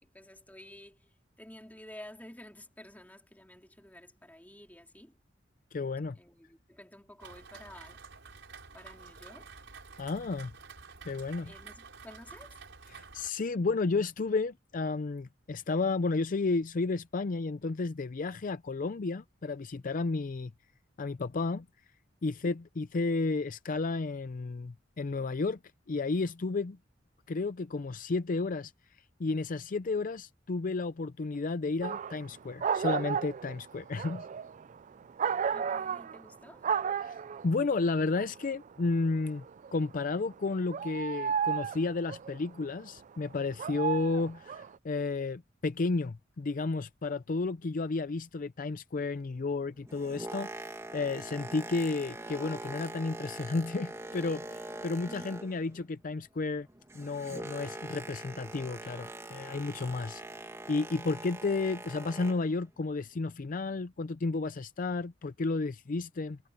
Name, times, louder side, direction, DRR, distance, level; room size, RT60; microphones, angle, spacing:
voice 1, 0.0-5.2 6.1-8.0 8.7-9.5 11.4-12.6 35.2-36.7 55.0-55.4, left 1 dB, 10° left, 2.7 m, -51 dB
voice 2, 5.7-6.2 10.0-10.5 11.1-11.5 12.9-20.5 21.0-21.7 22.2-25.6 25.9-26.8 27.3-28.7 29.2-34.3 37.0-37.2 37.4-39.4 39.7-56.7 56.9-66.4, left 3 dB, 45° left, 0.5 m, -32 dB
Rain, 7.2-13.3, right 5 dB, 70° right, 6.3 m, -50 dB
sound 1, 31.8-32.3 32.6-36.4 36.6-37.5 37.9-39.9 40.3-42.4 43.2-44.8, right 7 dB, 40° right, 0.4 m, -33 dB
Boat Water vehicle, 49.7-55.8 56.1-62.6 63.2-63.3, right 2 dB, 15° right, 1.8 m, -43 dB
head